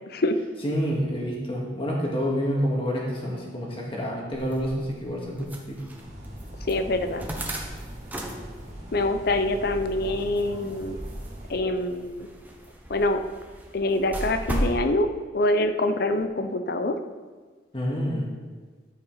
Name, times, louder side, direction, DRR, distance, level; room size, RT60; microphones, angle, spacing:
voice 1, 0.1-0.4 6.6-7.3 8.9-11.0 11.5-12.3 12.9-13.2 13.7-15.1 15.3-17.0, left 2 dB, 55° left, 8 dB, 0.6 m, -25 dB
voice 2, 0.6-5.8 17.7-18.3, equal, 30° left, -3 dB, 1.9 m, -28 dB
sound 1, 4.3-14.8, equal, 10° right, 1.0 m, -37 dB
sound 2, 6.0-11.5, equal, 40° right, 1.9 m, -41 dB
13.0 x 5.5 x 4.0 m, 1.4 s
head